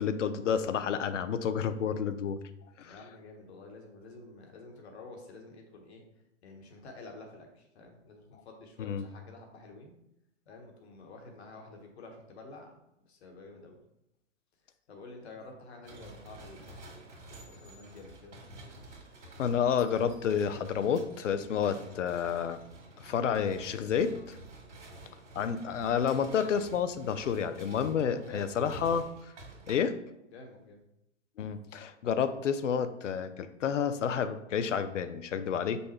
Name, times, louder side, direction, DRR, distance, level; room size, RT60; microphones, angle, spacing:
voice 1, 0.0-2.4 2.8-3.0 8.8-9.0 19.4-22.6 23.0-24.4 25.3-29.1 29.7-29.9 31.4-35.8, left 7 dB, 85° left, 11 dB, 0.5 m, -30 dB
voice 2, 2.8-6.0 6.4-9.9 10.5-12.7 13.1-13.8 14.9-18.9 28.0-28.5 30.3-30.8, left 3 dB, 60° left, 3 dB, 1.2 m, -50 dB
sound 1, 15.8-29.8, right 1 dB, 70° right, 1.7 m, -50 dB
5.4 x 2.2 x 4.3 m, 0.84 s
hypercardioid pair, 130°, 36 cm